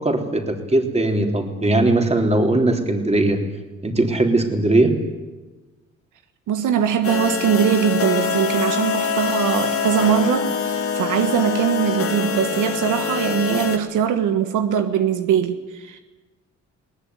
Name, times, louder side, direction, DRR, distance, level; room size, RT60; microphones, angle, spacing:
voice 1, 0.0-3.4 3.8-4.9, right 2 dB, 20° right, 4 dB, 3.6 m, -19 dB
voice 2, 6.5-16.0, right 8 dB, 80° right, 8 dB, 1.5 m, -21 dB
sound 1, 7.0-13.8, left 6 dB, 50° left, 2.3 m, -24 dB
20.5 x 18.5 x 9.7 m, 1.2 s
cardioid pair, 90°, 30 cm